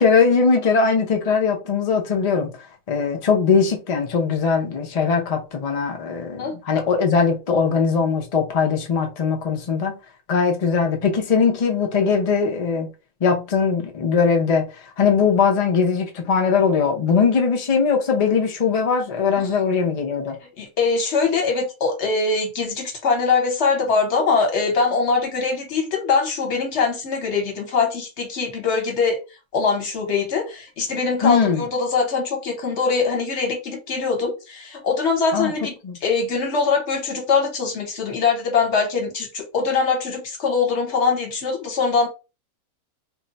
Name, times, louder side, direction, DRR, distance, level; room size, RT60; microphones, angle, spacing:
voice 1, 0.0-2.5 2.9-10.0 10.3-12.9 13.2-20.4 31.2-31.7 35.3-35.6 35.8-36.0, left 5 dB, 85° left, 0.3 m, -20 dB
voice 2, 20.6-29.2 29.5-42.1, left 4 dB, 50° left, 1.1 m, -22 dB
2.6 x 2.2 x 3.8 m
omnidirectional pair, 1.6 m